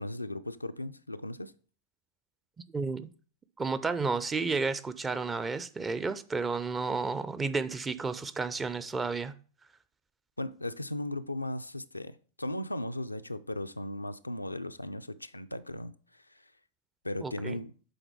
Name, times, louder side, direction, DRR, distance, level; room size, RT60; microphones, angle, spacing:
voice 1, 0.0-1.5 10.4-15.9 17.0-17.7, left 1 dB, 85° left, 0.3 m, -37 dB
voice 2, 2.7-3.1 3.6-9.3 17.2-17.6, right 4 dB, 15° right, 0.5 m, -32 dB
7.9 x 3.9 x 4.5 m
figure-of-eight pair, 90°, 0 cm